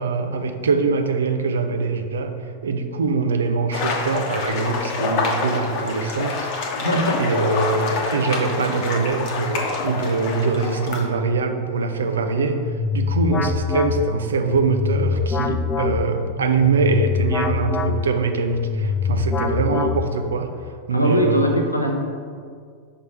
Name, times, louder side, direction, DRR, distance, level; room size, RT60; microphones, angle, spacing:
voice 1, 0.0-2.4 2.6-6.5 7.2-12.7 12.9-20.5 20.9-21.6, right 4 dB, 65° right, 7 dB, 0.4 m, -23 dB
sound 1, 3.7-11.0, left 3 dB, 45° left, 0.9 m, -26 dB
voice 2, 6.8-7.2 20.9-21.9, equal, 85° left, 2 dB, 0.7 m, -21 dB
sound 2, 12.3-20.4, left 5 dB, 20° left, 0.3 m, -24 dB
5.8 x 3.2 x 5.3 m, 2.1 s
figure-of-eight pair, 90°, 0 cm